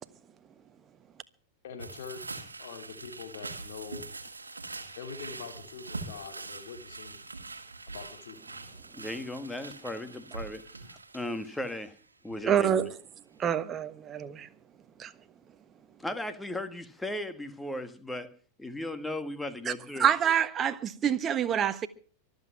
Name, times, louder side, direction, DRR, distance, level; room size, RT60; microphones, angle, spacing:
voice 1, 1.6-4.1 5.0-7.2 7.9-8.4, left 6 dB, 55° left, 2.6 m, -44 dB
sound 1, 1.8-12.0 12.3-12.5 12.8-12.9, right 3 dB, 80° right, 1.7 m, -43 dB
voice 2, 8.9-10.6 11.1-12.0 12.2-12.9 16.0-18.3 18.6-20.1, left 1 dB, 5° left, 1.7 m, -36 dB
voice 3, 12.4-12.9 13.4-14.5 15.0-15.1 19.7-19.8 20.0-21.9, right 9 dB, 25° right, 1.3 m, -26 dB
24.0 x 8.2 x 5.8 m
figure-of-eight pair, 90°, 0 cm